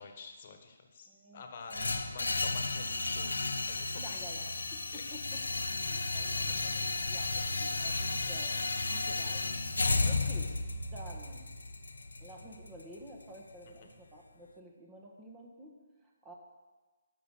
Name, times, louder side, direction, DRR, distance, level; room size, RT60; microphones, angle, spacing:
voice 1, 0.0-4.2 4.9-5.0 10.0-10.2 13.8-13.9, left 5 dB, 45° left, 5 dB, 1.4 m, -49 dB
voice 2, 1.0-2.0 4.0-5.4 5.9-6.8 7.1-8.6 8.9-9.4 10.0-10.5 10.9-11.4 12.2-16.3, right 1 dB, 15° right, 0 dB, 1.4 m, -51 dB
sound 1, 1.7-13.7, left 3 dB, 80° left, 0.8 m, -33 dB
12.5 x 5.3 x 6.4 m, 1.3 s
figure-of-eight pair, 145°, 0 cm